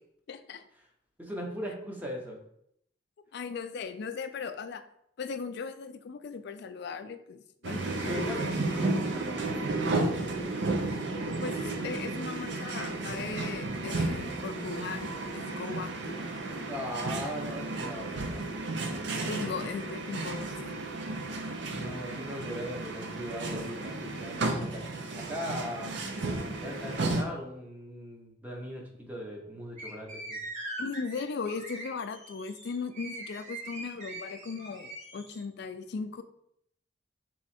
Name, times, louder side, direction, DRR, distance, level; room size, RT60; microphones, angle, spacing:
voice 1, 0.3-0.6 3.3-4.8 5.2-8.5 11.4-16.2 19.3-20.8 30.8-36.2, left 5 dB, 60° left, 9 dB, 0.4 m, -38 dB
voice 2, 1.2-2.4 7.9-10.7 16.7-18.5 21.7-26.0 26.6-30.4, equal, 10° right, -1 dB, 0.8 m, -39 dB
sydney train, 7.6-27.2, right 2 dB, 70° right, 0.6 m, -33 dB
sound 1, 29.8-35.4, right 1 dB, 40° right, 1.2 m, -42 dB
3.6 x 3.1 x 4.3 m, 0.73 s
head